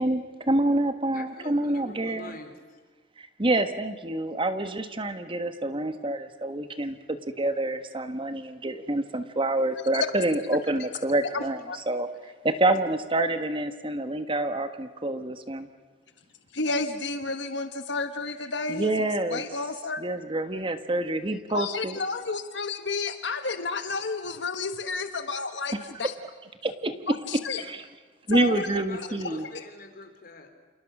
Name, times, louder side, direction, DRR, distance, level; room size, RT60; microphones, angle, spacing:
voice 1, 0.0-2.3 3.2-11.6 11.9-12.1 12.4-15.7 18.7-19.4 20.0-22.0 26.6-27.8 28.3-29.4, right 2 dB, 30° right, 9 dB, 1.4 m, -27 dB
voice 2, 1.1-2.8 12.2-12.3 28.4-30.5, left 2 dB, 55° left, 6 dB, 3.6 m, -44 dB
voice 3, 11.3-11.8 16.5-20.0 21.5-26.1 27.1-27.6 28.3-28.7 29.5-29.6, left 3 dB, 70° left, 8 dB, 1.3 m, -31 dB
29.5 x 27.5 x 6.1 m, 1.4 s
head